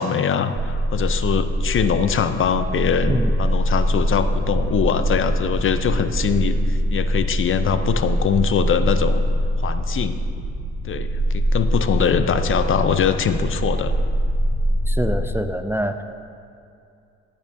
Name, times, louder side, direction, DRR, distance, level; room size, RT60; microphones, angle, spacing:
voice 1, 0.0-9.2 9.6-10.2 10.8-13.9, left 7 dB, 45° left, 10 dB, 0.6 m, -22 dB
sound 1, 0.6-15.4, equal, 40° right, 1.3 m, -23 dB
voice 2, 14.9-16.0, right 1 dB, 10° right, 8 dB, 0.4 m, -24 dB
16.5 x 8.7 x 2.7 m, 2.5 s
supercardioid pair, 70°, 30 cm